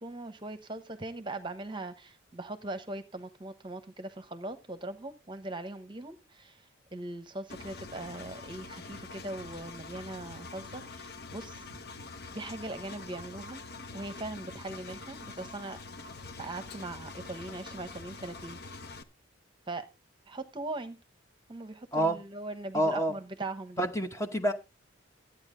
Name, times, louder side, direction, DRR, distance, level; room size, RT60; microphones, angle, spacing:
voice 1, 0.0-11.8 12.3-13.6 13.9-15.8 16.4-18.6 19.7-19.9 20.3-21.0 21.5-23.9, right 2 dB, 25° right, 0.9 m, -40 dB
Engine, 7.5-19.0, left 3 dB, 50° left, 0.8 m, -45 dB
voice 2, 22.7-23.1 23.8-24.5, right 1 dB, 15° left, 0.8 m, -27 dB
13.0 x 8.9 x 3.8 m
head